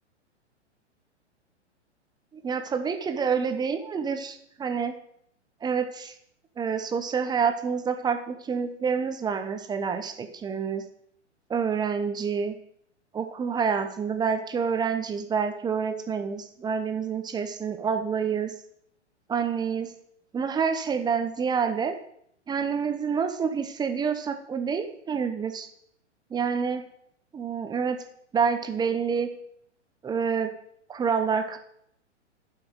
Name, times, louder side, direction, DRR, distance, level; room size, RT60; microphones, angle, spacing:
voice 1, 2.4-4.9 5.6-6.1 6.6-10.8 11.5-12.6 13.1-18.5 19.3-19.9 20.3-21.9 22.5-25.7 26.3-26.8 27.3-28.0 28.3-29.3 30.0-30.5 30.9-31.6, right 6 dB, 10° right, 7 dB, 0.9 m, -27 dB
11.5 x 5.8 x 6.7 m, 0.71 s
figure-of-eight pair, 110°, 36 cm